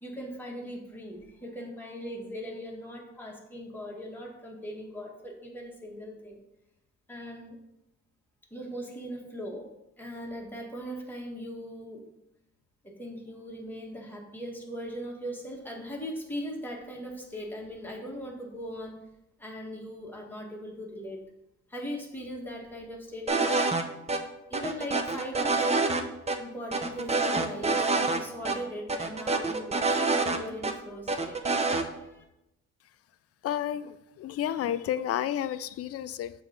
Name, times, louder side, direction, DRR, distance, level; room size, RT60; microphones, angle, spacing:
voice 1, 0.0-6.4 7.1-7.6 8.5-12.1 12.8-19.0 19.4-21.2 21.7-23.7 24.5-26.1 26.4-31.4 31.7-32.2, equal, 5° left, -2 dB, 1.6 m, -39 dB
sound 1, 23.3-23.8 24.1-24.2 24.5-26.0 26.3-26.4 26.7-28.2 28.5-28.6 28.9-30.7 31.1-31.8, right 3 dB, 20° right, 0.6 m, -27 dB
voice 2, 33.4-36.3, left 11 dB, 50° left, 14 dB, 0.4 m, -31 dB
7.0 x 3.2 x 5.1 m, 0.88 s
cardioid pair, 90°, 30 cm